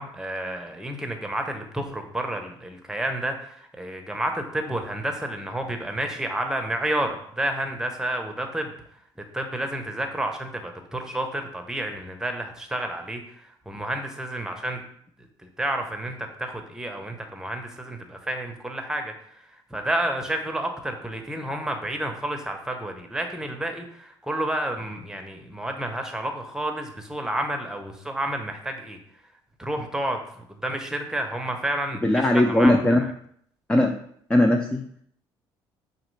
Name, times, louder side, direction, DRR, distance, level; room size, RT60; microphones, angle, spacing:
voice 1, 0.0-3.3 3.8-8.7 9.3-13.2 13.7-14.8 15.6-19.1 19.7-29.0 29.6-30.2 30.6-32.2 32.5-32.7, right 1 dB, 5° right, 4 dB, 0.8 m, -30 dB
voice 2, 32.0-33.0 33.7-34.0 34.3-34.8, left 1 dB, 10° left, 5 dB, 0.4 m, -19 dB
5.0 x 2.8 x 3.2 m, 0.66 s
supercardioid pair, 85°, 10 cm